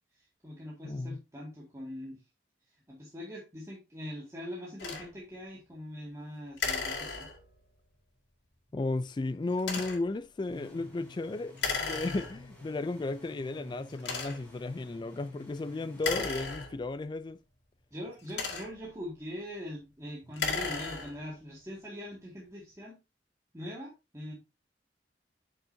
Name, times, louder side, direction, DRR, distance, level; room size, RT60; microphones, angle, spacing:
voice 1, 0.1-2.2 2.9-7.3 17.9-23.0 23.5-24.3, equal, 15° right, 2.0 m, -42 dB
voice 2, 0.8-1.2 8.7-17.4, left 2 dB, 25° left, 0.3 m, -34 dB
sound 1, 4.8-5.1 6.6-7.6 9.6-10.1 11.6-12.6 13.3-13.4 14.0-14.6 15.9-17.1 18.1-19.0 20.2-21.3, left 5 dB, 75° left, 2.4 m, -35 dB
sound 2, 10.5-17.0, left 2 dB, 10° left, 3.5 m, -51 dB
9.0 x 6.2 x 2.7 m
head